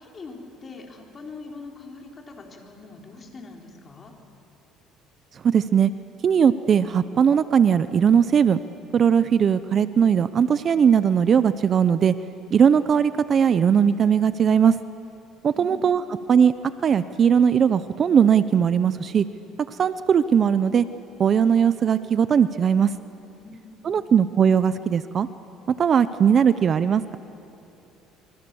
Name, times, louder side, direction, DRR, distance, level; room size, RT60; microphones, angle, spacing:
voice 1, 0.0-4.1 15.5-16.3 23.3-24.1, left 3 dB, 30° left, 1 dB, 4.1 m, -43 dB
voice 2, 5.4-5.9 6.2-8.6 8.9-12.1 12.5-14.7 15.4-16.0 16.3-16.5 16.8-19.2 19.8-20.8 21.2-22.9 23.8-25.3 25.8-27.2, right 7 dB, 40° right, 14 dB, 0.6 m, -19 dB
26.5 x 24.5 x 7.0 m, 2.9 s
cardioid pair, 120°, 0 cm